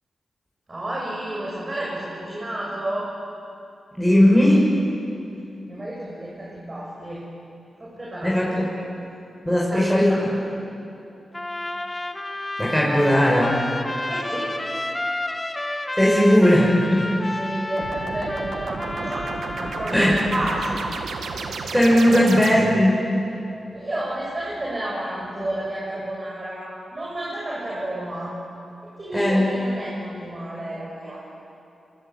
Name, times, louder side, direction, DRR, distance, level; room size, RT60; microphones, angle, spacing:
voice 1, 0.7-3.1 5.7-7.2 7.8-8.7 9.5-10.4 14.1-14.6 17.3-20.8 22.1-22.3 23.7-28.3 28.8-31.2, right 1 dB, 35° right, -4 dB, 6.9 m, -31 dB
voice 2, 4.0-4.6 8.2-8.5 9.5-10.1 12.6-13.6 16.0-17.2 19.9-20.1 21.7-23.0 29.1-29.5, equal, ahead, -4 dB, 6.1 m, -17 dB
Trumpet, 11.3-20.1, left 2 dB, 20° left, 2.1 m, -31 dB
sound 1, 17.8-23.0, right 4 dB, 85° right, 1.9 m, -32 dB
25.0 x 22.5 x 8.6 m, 2.7 s
cardioid pair, 60°, 0 cm